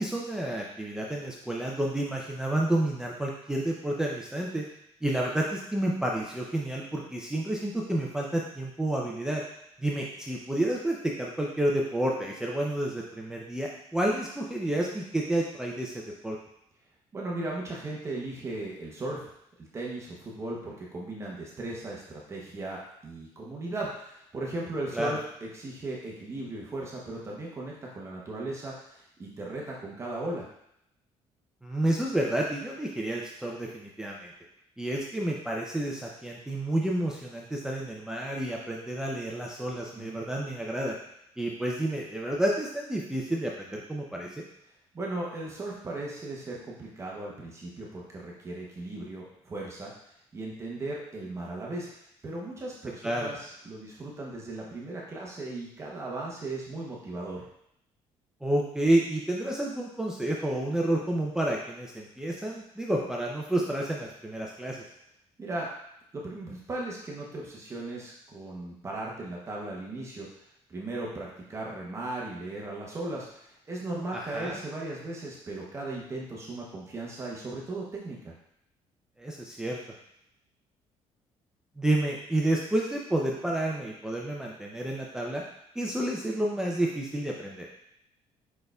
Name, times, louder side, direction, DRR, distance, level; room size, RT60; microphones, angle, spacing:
voice 1, 0.0-4.6 5.0-9.4 9.8-16.4 24.9-25.1 31.6-34.3 34.8-40.9 41.4-44.4 53.0-53.3 58.4-64.8 74.1-74.6 79.2-79.8 81.8-85.4 85.8-87.7, right 1 dB, 5° right, -3 dB, 0.4 m, -30 dB
voice 2, 17.1-19.2 19.6-30.5 39.9-40.2 44.9-49.9 50.3-57.4 65.4-65.7 66.1-70.3 70.7-78.3, right 2 dB, 25° right, -3 dB, 0.8 m, -37 dB
4.9 x 4.3 x 2.3 m, 0.76 s
cardioid pair, 145°, 12 cm